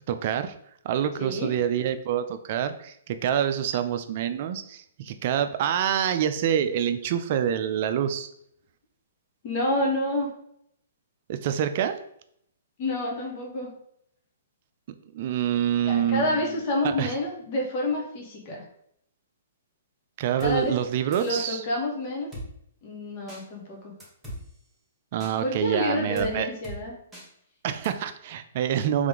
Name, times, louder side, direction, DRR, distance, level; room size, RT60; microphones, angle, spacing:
voice 1, 0.1-0.5 0.8-8.3 11.3-12.0 15.1-16.4 16.8-17.1 20.2-21.6 25.1-26.5 27.6-29.1, right 9 dB, 50° right, 9 dB, 0.4 m, -26 dB
voice 2, 1.2-1.5 9.4-10.3 12.8-13.7 15.8-18.6 20.4-20.8 21.2-22.3 22.8-23.9 25.4-26.9, left 1 dB, 45° left, 0 dB, 1.2 m, -28 dB
Drum kit, 20.4-20.6 21.1-21.5 22.3-22.5 23.3-23.4 24.0-24.4 25.2-25.3 26.2-26.3 26.6-26.8 27.1-27.3 27.8-27.9, equal, 5° right, 1.4 m, -38 dB
3.6 x 3.3 x 3.6 m, 0.71 s
hypercardioid pair, 135°, 0 cm